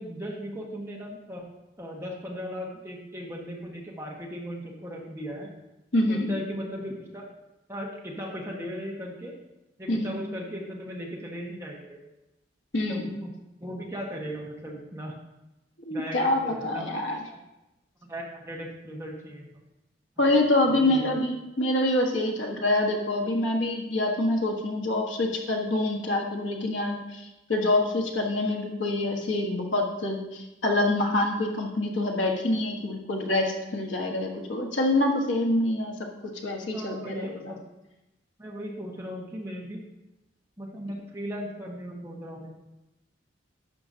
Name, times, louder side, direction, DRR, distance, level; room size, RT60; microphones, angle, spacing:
voice 1, 0.0-1.5 1.8-5.5 6.1-7.3 7.7-9.4 9.8-12.0 12.9-13.3 13.6-15.2 15.9-16.9 17.3-17.4 18.1-19.5 20.7-21.2 36.7-37.6 38.4-39.8 40.6-42.5, equal, 15° right, -2 dB, 1.4 m, -37 dB
voice 2, 5.9-6.4 9.9-10.2 12.7-13.1 15.8-17.2 20.2-35.9 36.2-37.5, left 1 dB, 90° left, 1 dB, 1.4 m, -26 dB
11.5 x 7.1 x 2.8 m, 0.96 s
head